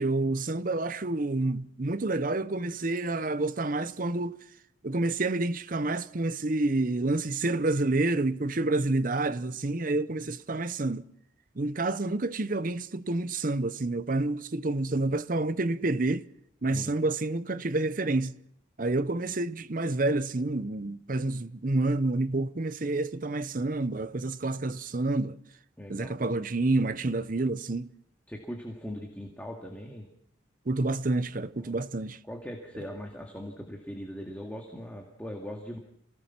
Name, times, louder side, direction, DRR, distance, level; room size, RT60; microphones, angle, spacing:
voice 1, 0.0-4.4 4.8-11.0 11.6-16.3 16.6-18.4 18.8-25.4 25.9-27.9 30.7-32.2, right 2 dB, 45° right, 0.7 m, -28 dB
voice 2, 25.8-26.2 28.3-30.1 31.6-31.8 32.3-35.8, equal, 10° left, 2.1 m, -40 dB
27.5 x 17.5 x 6.0 m
head